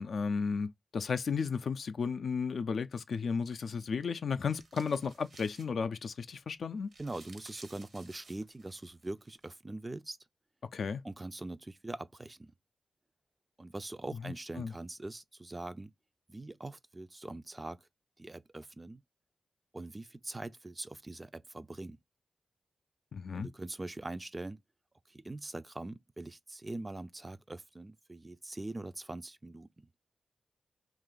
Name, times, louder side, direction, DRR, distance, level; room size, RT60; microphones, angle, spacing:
voice 1, 0.0-6.9 10.7-11.0 14.2-14.7 23.1-23.5, left 5 dB, 75° left, 0.3 m, -34 dB
sound 1, 4.5-6.2 6.5-6.6 6.8-9.5, right 3 dB, 70° right, 0.8 m, -56 dB
voice 2, 7.0-10.2 11.0-12.5 13.6-15.9 16.3-17.8 18.2-19.0 19.7-22.0 23.3-24.6 25.1-29.9, right 2 dB, 25° right, 0.3 m, -42 dB
2.7 x 2.5 x 3.7 m
cardioid pair, 60°, 0 cm